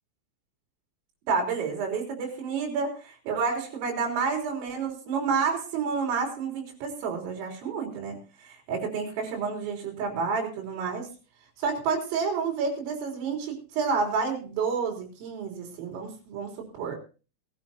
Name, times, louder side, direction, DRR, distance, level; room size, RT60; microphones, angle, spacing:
voice 1, 1.3-8.2 8.4-11.1 11.6-17.0, right 5 dB, 75° right, 0 dB, 6.1 m, -29 dB
20.5 x 13.0 x 2.8 m, 0.34 s
omnidirectional pair, 6.0 m